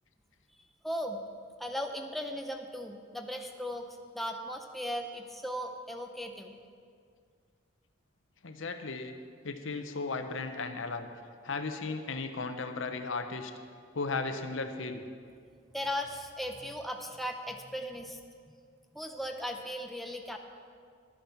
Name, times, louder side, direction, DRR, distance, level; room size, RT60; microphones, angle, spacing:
voice 1, 0.8-1.2 1.6-6.5 15.7-18.2 18.9-20.4, equal, ahead, 3 dB, 0.6 m, -37 dB
voice 2, 8.4-9.1 9.4-11.1 11.4-13.5 13.9-15.0, left 3 dB, 75° left, 7 dB, 0.8 m, -35 dB
11.5 x 9.1 x 5.8 m, 2.2 s
head